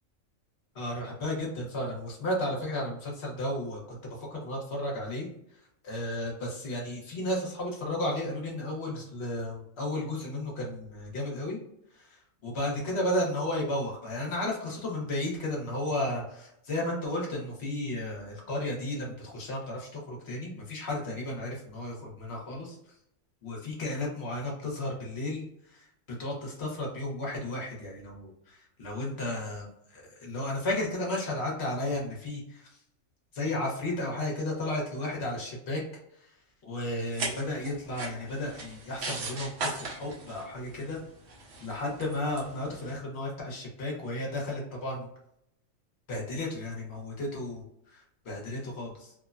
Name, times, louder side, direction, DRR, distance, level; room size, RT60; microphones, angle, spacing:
voice 1, 0.7-5.3 5.8-11.6 11.9-22.8 23.4-25.9 26.2-32.8 33.3-35.8 36.2-36.3 36.6-41.0 41.6-45.1 46.1-49.1, left 1 dB, 55° left, -2 dB, 1.1 m, -33 dB
sound 1, 37.0-43.0, right 3 dB, 60° right, 0.9 m, -39 dB
3.1 x 2.1 x 2.4 m, 0.77 s
omnidirectional pair, 1.4 m